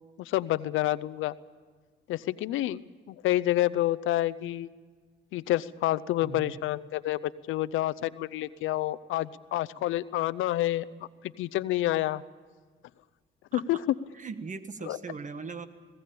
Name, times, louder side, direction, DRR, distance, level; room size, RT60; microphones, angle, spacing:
voice 1, 0.2-1.3 2.1-2.8 3.1-4.7 5.3-10.9 11.4-12.2 13.5-13.8 14.8-15.0, left 15 dB, 85° left, 18 dB, 0.6 m, -28 dB
voice 2, 6.2-6.6 13.5-13.6 14.2-15.7, right 5 dB, 40° right, 11 dB, 1.4 m, -39 dB
20.5 x 17.5 x 8.5 m, 1.5 s
cardioid pair, 90°, 20 cm